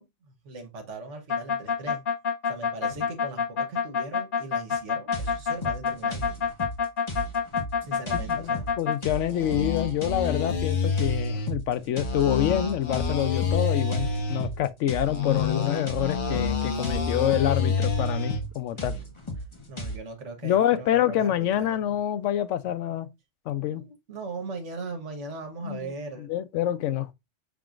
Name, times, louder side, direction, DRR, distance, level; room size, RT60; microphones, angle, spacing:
voice 1, 0.0-2.0 2.4-6.3 7.8-8.7 18.7-19.1 19.4-21.9 23.7-26.3, right 3 dB, 80° right, 1.5 m, -39 dB
sound 1, 1.3-9.0 9.3-11.5 12.0-14.5 15.0-18.4, left 5 dB, 50° left, 0.9 m, -27 dB
sound 2, 5.1-20.0, equal, 25° left, 1.1 m, -36 dB
voice 2, 8.3-18.9 20.4-23.1 23.5-23.8 25.6-25.9 26.2-27.1, left 11 dB, 90° left, 0.9 m, -27 dB
5.8 x 3.7 x 2.4 m
omnidirectional pair, 1.2 m